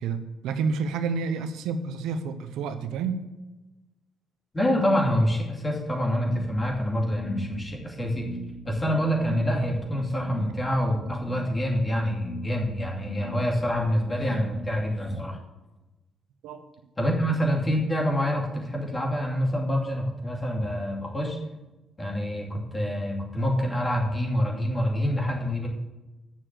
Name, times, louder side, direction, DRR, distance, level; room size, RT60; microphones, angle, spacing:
voice 1, 0.0-3.2 16.4-16.7, right 5 dB, 90° right, 9 dB, 0.7 m, -29 dB
voice 2, 4.5-8.3 8.6-15.4 17.0-21.4 22.0-25.7, equal, 20° left, 0 dB, 2.6 m, -26 dB
sound 1, 6.2-15.2, right 2 dB, 50° left, 2.8 m, -41 dB
7.4 x 6.6 x 7.6 m, 1.1 s
cardioid pair, 90°, 0 cm